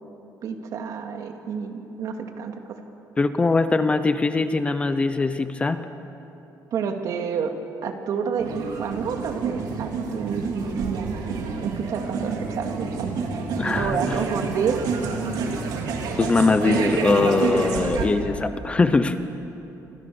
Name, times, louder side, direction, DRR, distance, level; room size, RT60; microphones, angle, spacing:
voice 1, 0.4-2.8 6.7-7.6 7.8-11.1 11.6-13.1 13.7-14.8, right 6 dB, 55° right, 4 dB, 2.6 m, -29 dB
voice 2, 3.2-5.8 13.6-14.2 16.2-19.2, left 3 dB, 15° left, 10 dB, 0.8 m, -21 dB
sound 1, 8.4-18.1, right 4 dB, 75° right, 4.1 m, -28 dB
28.0 x 27.0 x 7.1 m, 3.0 s
cardioid pair, 170°, 7 cm